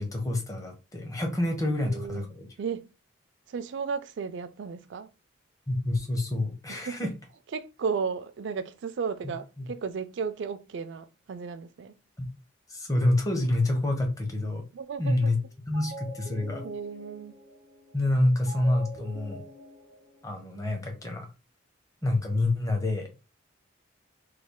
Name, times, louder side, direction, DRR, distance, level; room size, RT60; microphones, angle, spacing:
voice 1, 0.0-2.5 5.7-7.1 9.2-9.3 9.6-9.7 12.2-12.3 12.7-14.6 15.0-15.4 15.7-16.6 17.9-19.5 20.2-21.3 22.0-23.1, left 1 dB, 15° left, 0.7 m, -27 dB
voice 2, 1.9-2.3 2.6-2.9 3.5-5.1 6.7-7.0 7.5-12.0 14.7-15.3 16.6-17.3, right 5 dB, 65° right, 0.3 m, -34 dB
sound 1, 15.4-15.5 15.7-20.9, right 1 dB, 85° left, 1.4 m, -46 dB
3.1 x 2.2 x 3.6 m
head